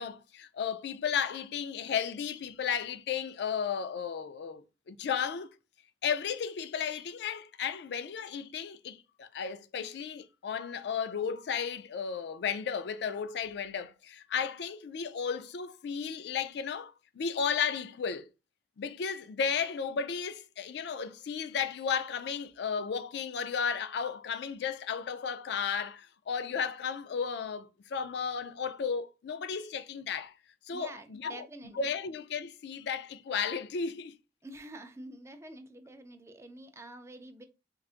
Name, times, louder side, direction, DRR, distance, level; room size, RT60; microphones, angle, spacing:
voice 1, 0.0-5.5 6.0-18.3 18.8-30.3 30.6-31.5 31.7-34.2, left 6 dB, 65° left, 0.4 m, -34 dB
voice 2, 30.7-31.9 34.4-37.4, right 1 dB, 15° right, 0.4 m, -47 dB
4.5 x 2.5 x 2.4 m
head